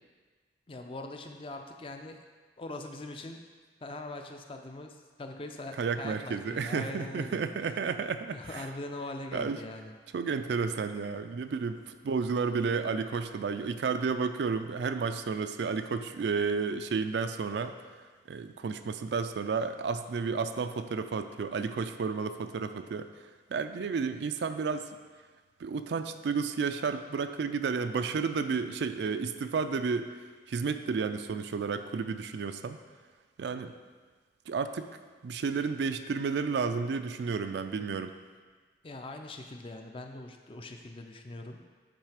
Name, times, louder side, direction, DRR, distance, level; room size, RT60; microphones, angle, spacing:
voice 1, 0.7-2.2 2.6-3.4 3.8-7.4 8.3-9.9 38.8-41.6, left 2 dB, 30° left, 4 dB, 0.4 m, -42 dB
voice 2, 5.8-8.7 9.3-9.6 10.1-17.7 18.3-23.1 23.5-24.9 25.6-30.1 30.5-32.8 33.4-33.7 34.5-34.9 35.2-38.1, right 5 dB, 70° right, 9 dB, 0.3 m, -32 dB
8.7 x 3.3 x 4.9 m, 1.4 s
head